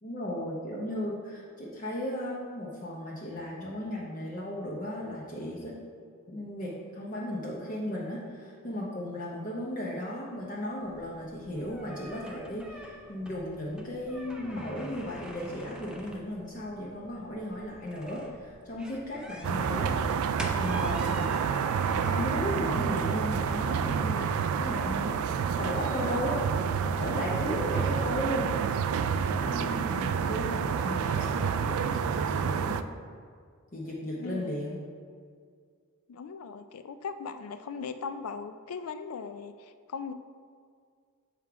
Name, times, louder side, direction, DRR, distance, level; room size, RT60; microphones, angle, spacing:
voice 1, 0.0-5.8 6.3-20.0 20.5-21.6 21.9-26.4 26.7-28.6 29.3-32.8 33.7-34.8, left 1 dB, 40° left, -4 dB, 0.7 m, -36 dB
sound 1, 10.8-24.7, equal, 5° right, 0.5 m, -46 dB
sound 2, 19.4-32.8, right 6 dB, 80° right, 0.3 m, -29 dB
voice 2, 34.2-34.6 36.1-40.1, left 5 dB, 90° left, 10 dB, 0.4 m, -39 dB
7.4 x 3.6 x 4.7 m, 2.1 s
head